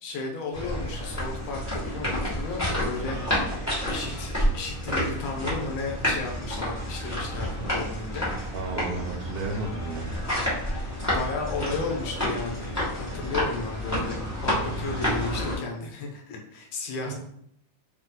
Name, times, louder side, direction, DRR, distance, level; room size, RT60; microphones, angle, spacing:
voice 1, 0.0-3.2 3.9-8.3 11.0-17.1, left 3 dB, 70° left, 0 dB, 1.7 m, -34 dB
sound 1, 0.5-15.6, equal, 10° left, 0.8 m, -29 dB
voice 2, 8.5-10.1 17.0-17.1, right 3 dB, 80° right, -2 dB, 1.4 m, -33 dB
4.6 x 2.9 x 3.8 m, 0.72 s
omnidirectional pair, 3.5 m